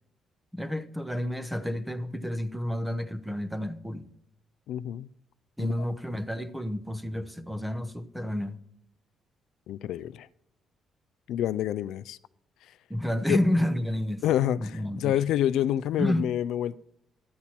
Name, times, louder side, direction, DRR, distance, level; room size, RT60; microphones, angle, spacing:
voice 1, 0.5-4.1 5.6-8.6 12.9-14.2 14.6-15.2 16.0-16.3, left 1 dB, 5° right, 0.6 m, -30 dB
voice 2, 4.7-5.1 5.6-5.7 9.7-10.3 11.3-12.2 13.3-13.4 14.2-16.8, left 11 dB, 80° left, 0.3 m, -27 dB
12.0 x 8.6 x 4.3 m
cardioid pair, 165°, 0 cm